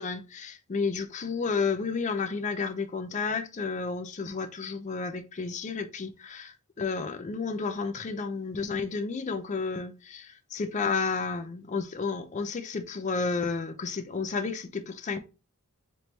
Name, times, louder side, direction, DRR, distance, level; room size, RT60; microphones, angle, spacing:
voice 1, 0.0-15.2, left 4 dB, 30° left, 0.4 m, -31 dB
4.0 x 3.0 x 3.2 m
head